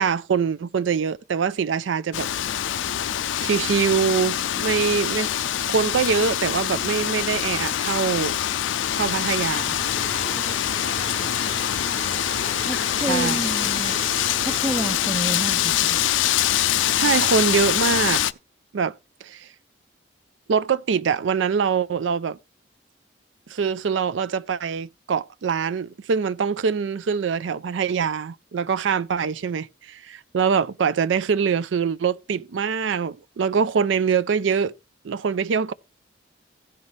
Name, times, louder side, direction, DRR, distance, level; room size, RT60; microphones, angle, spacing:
voice 1, 0.0-2.3 3.4-5.4 5.7-8.4 8.9-9.8 13.1-13.4 17.0-18.2 18.7-19.0 19.2-19.5 20.5-22.4 23.5-34.7 35.0-35.7, right 6 dB, 80° right, 0.4 m, -24 dB
Wind, 2.1-18.3, left 11 dB, 85° left, 0.4 m, -24 dB
sound 1, 9.7-15.2, right 1 dB, 35° right, 1.2 m, -38 dB
voice 2, 12.6-14.0 14.4-16.0, right 1 dB, 15° right, 0.4 m, -29 dB
16.5 x 5.6 x 3.1 m
head